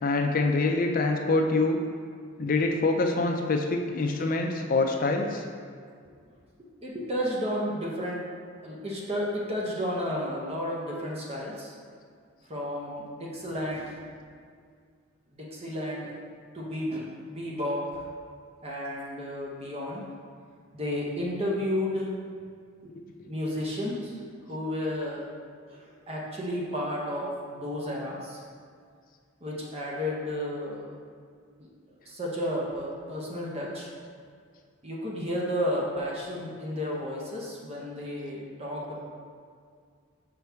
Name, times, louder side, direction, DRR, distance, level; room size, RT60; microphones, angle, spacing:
voice 1, 0.0-1.8 2.4-5.4 22.9-23.0, left 3 dB, 45° left, 3 dB, 0.4 m, -25 dB
voice 2, 6.6-8.2 8.6-11.7 12.5-14.0 15.3-16.1 16.5-18.1 18.6-20.0 20.7-22.2 22.8-22.9 23.3-24.2 24.5-25.2 25.7-28.4 29.4-30.9 31.6-31.7 32.0-33.9 34.8-39.0, equal, 30° right, -3 dB, 0.8 m, -32 dB
5.9 x 5.2 x 3.4 m, 2.1 s
head